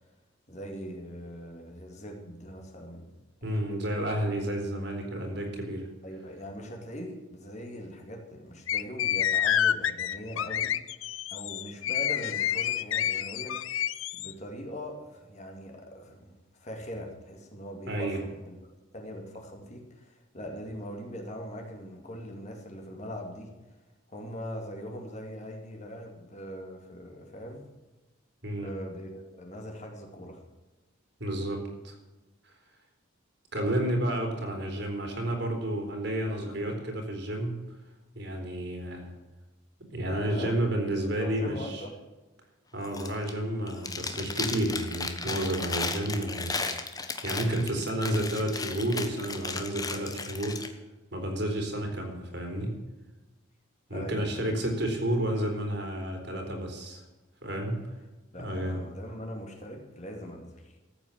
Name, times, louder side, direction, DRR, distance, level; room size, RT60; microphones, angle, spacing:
voice 1, 0.5-3.1 3.5-3.8 6.0-10.8 11.3-13.6 14.1-18.5 18.9-23.6 24.1-27.7 28.6-30.4 40.0-40.6 41.0-41.9 53.9-54.6 58.3-60.8, equal, 35° left, 2 dB, 2.3 m, -41 dB
voice 2, 3.4-5.9 17.9-18.2 28.4-28.7 31.2-32.0 32.4-32.5 33.5-37.6 38.2-39.1 39.9-41.8 42.7-50.6 51.1-52.8 53.9-57.0 57.4-57.8 58.4-58.8, right 1 dB, 55° right, 3 dB, 3.7 m, -31 dB
sound 1, 8.7-14.3, left 10 dB, 70° left, 0.5 m, -28 dB
Chewing mastication, 42.8-43.4 43.7-50.7, left 4 dB, 15° left, 1.1 m, -35 dB
14.0 x 8.7 x 7.5 m, 1.1 s
head